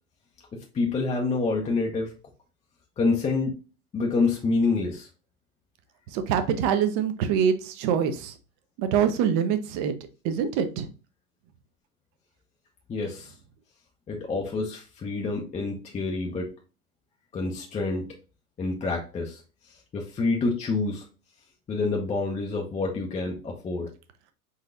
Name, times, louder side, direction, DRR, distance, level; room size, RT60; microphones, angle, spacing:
voice 1, 0.5-2.1 3.0-3.5 3.9-5.1 12.9-13.3 14.1-16.5 17.3-18.1 18.6-19.4 19.9-21.0 21.7-23.9, left 3 dB, 15° left, 0 dB, 0.7 m, -27 dB
voice 2, 6.1-8.3 8.8-9.9 10.2-10.9, right 8 dB, 45° right, 9 dB, 0.8 m, -25 dB
4.3 x 4.0 x 2.6 m, 0.34 s
hypercardioid pair, 115°, 45 cm